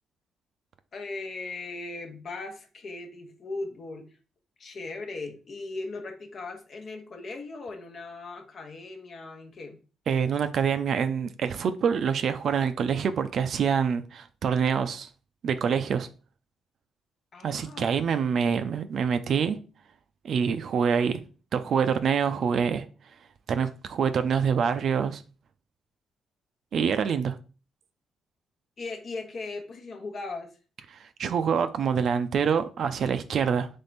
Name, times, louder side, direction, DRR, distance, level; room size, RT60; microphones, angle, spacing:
voice 1, 0.9-4.1 4.6-9.8 17.3-17.9 28.8-30.6, left 3 dB, 50° left, 0.9 m, -38 dB
voice 2, 10.1-15.1 15.4-16.1 17.4-19.6 20.2-21.2 21.5-22.8 23.5-25.2 26.7-27.4 31.2-33.7, right 7 dB, 60° right, 0.5 m, -26 dB
3.5 x 3.4 x 4.0 m
cardioid pair, 90°, 0 cm